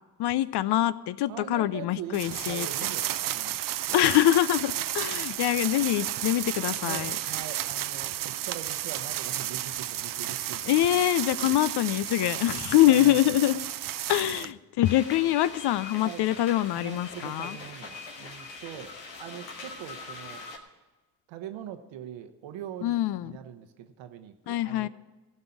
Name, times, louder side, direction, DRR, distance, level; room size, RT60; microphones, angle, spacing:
voice 1, 0.2-2.7 3.9-7.1 10.6-13.6 14.1-17.6 22.8-23.4 24.5-24.9, left 14 dB, 60° left, 17 dB, 0.6 m, -24 dB
voice 2, 1.3-3.9 5.0-5.3 6.8-11.0 11.4-11.6 12.4-13.6 14.1-14.5 16.0-16.3 16.7-20.5 21.3-24.9, right 10 dB, 70° right, 8 dB, 1.2 m, -43 dB
sound 1, 2.1-14.5, right 13 dB, 45° right, 0.5 m, -32 dB
sound 2, 14.8-20.6, left 3 dB, 85° left, 1.5 m, -42 dB
15.5 x 5.5 x 9.7 m, 1.2 s
hypercardioid pair, 45°, 47 cm